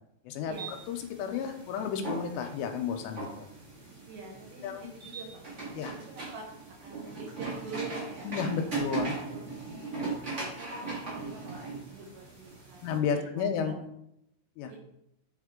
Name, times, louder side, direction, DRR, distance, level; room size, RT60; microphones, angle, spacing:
sound 1, 0.5-13.0, right 3 dB, 45° right, 0.9 m, -39 dB
voice 1, 0.9-3.5 4.6-4.9 5.7-6.0 8.2-9.1 12.8-13.8 14.6-14.7, left 6 dB, 85° left, 5 dB, 2.8 m, -32 dB
voice 2, 4.1-5.6 5.8-6.5 6.8-9.0 9.3-9.5 9.8-10.0 10.6-13.8 14.7-14.8, right 3 dB, 75° right, 0 dB, 3.3 m, -46 dB
8.1 x 3.6 x 3.7 m, 0.80 s
omnidirectional pair, 5.1 m